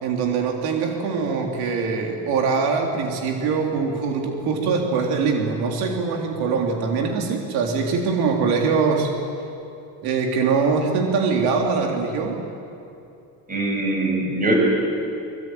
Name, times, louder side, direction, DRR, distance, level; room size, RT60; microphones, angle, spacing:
voice 1, 0.0-9.1 10.0-12.4, right 5 dB, 85° right, 1 dB, 3.6 m, -23 dB
voice 2, 13.5-14.5, right 1 dB, 20° right, 0 dB, 7.7 m, -22 dB
24.5 x 24.0 x 9.4 m, 2.7 s
cardioid pair, 145°, 37 cm